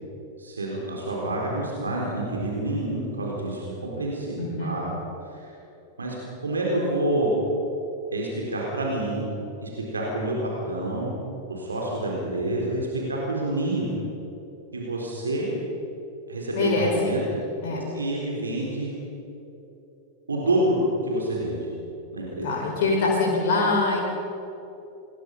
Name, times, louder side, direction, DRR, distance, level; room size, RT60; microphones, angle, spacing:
voice 1, 0.4-4.9 5.3-5.5 6.0-6.1 6.4-7.3 8.1-9.2 9.6-11.2 11.5-13.8 14.7-15.5 16.3-17.2 17.9-18.9 20.3-21.6 22.1-22.5, right 1 dB, 75° right, -3 dB, 4.3 m, -28 dB
voice 2, 4.4-4.8 16.5-17.1 17.6-17.9 22.4-24.0, left 3 dB, 50° left, -1 dB, 4.8 m, -24 dB
27.5 x 21.5 x 5.6 m, 3.0 s
figure-of-eight pair, 90°, 0 cm